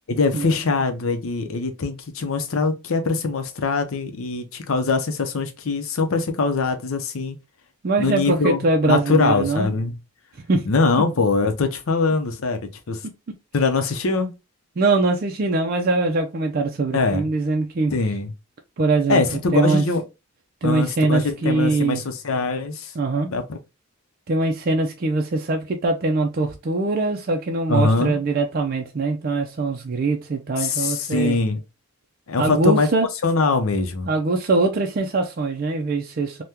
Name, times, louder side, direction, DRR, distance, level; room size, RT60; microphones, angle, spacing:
voice 1, 0.1-7.4 8.0-10.0 10.7-12.6 12.9-13.0 13.5-14.3 16.9-17.3 17.9-18.3 19.1-20.0 20.6-22.9 23.2-23.6 27.7-28.2 30.6-31.6 32.3-32.9 33.2-34.1, left 4 dB, 75° left, 0.6 m, -22 dB
voice 2, 7.8-9.7 10.5-10.7 14.8-17.9 18.8-19.2 19.5-19.8 20.6-22.0 23.0-23.3 24.3-31.4 32.4-33.1 34.1-36.4, right 3 dB, 45° right, 0.4 m, -22 dB
3.5 x 2.2 x 2.8 m
head